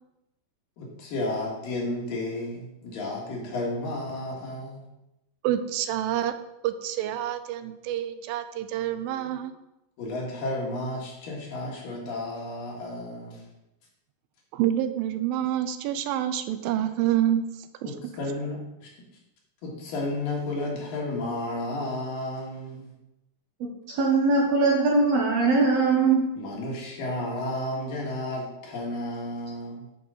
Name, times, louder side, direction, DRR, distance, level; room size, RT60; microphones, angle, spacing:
voice 1, 0.8-4.8 10.0-13.4 17.8-18.9 19.6-22.9 26.4-29.9, left 1 dB, 75° left, -2 dB, 3.4 m, -32 dB
voice 2, 5.4-6.3 6.6-9.5 14.5-17.4 17.8-17.9, right 11 dB, 90° right, 10 dB, 2.4 m, -27 dB
voice 3, 23.9-26.2, right 3 dB, 70° right, -1 dB, 1.7 m, -21 dB
11.0 x 5.0 x 3.9 m, 0.91 s
omnidirectional pair, 4.1 m